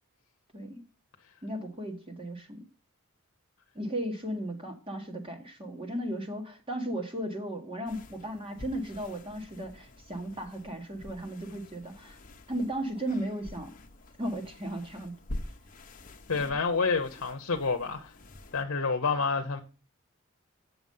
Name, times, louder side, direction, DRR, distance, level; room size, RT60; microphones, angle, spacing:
voice 1, 1.4-2.6 3.7-12.2 12.5-13.7 14.2-15.1 16.3-16.4, right 1 dB, 25° right, 1.6 m, -35 dB
sound 1, 7.9-18.7, left 1 dB, 40° left, 0.9 m, -47 dB
voice 2, 16.3-18.1 18.5-19.6, left 4 dB, 70° left, 0.9 m, -28 dB
8.0 x 7.0 x 5.5 m
head